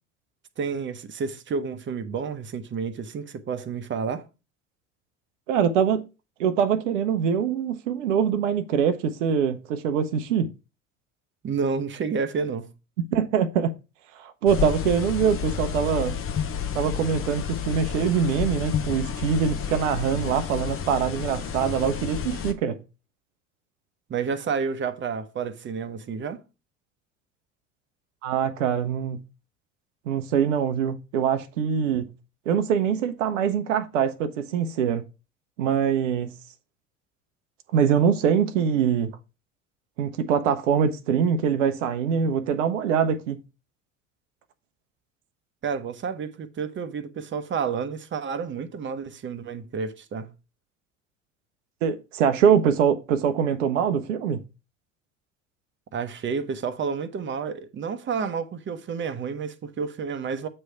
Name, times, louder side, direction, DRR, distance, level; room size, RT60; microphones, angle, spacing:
voice 1, 0.6-4.3 11.4-12.7 24.1-26.4 45.6-50.3 55.9-60.5, right 5 dB, 30° right, 0.9 m, -30 dB
voice 2, 5.5-6.1 6.4-10.5 13.1-13.7 14.1-16.2 16.7-22.8 28.2-29.2 30.1-32.1 32.5-35.0 35.6-36.3 37.7-39.2 40.0-43.4 51.8-54.4, right 7 dB, 70° right, 0.8 m, -23 dB
sound 1, 14.5-22.5, left 7 dB, 35° left, 0.9 m, -30 dB
7.9 x 3.3 x 5.7 m
hypercardioid pair, 70°, 38 cm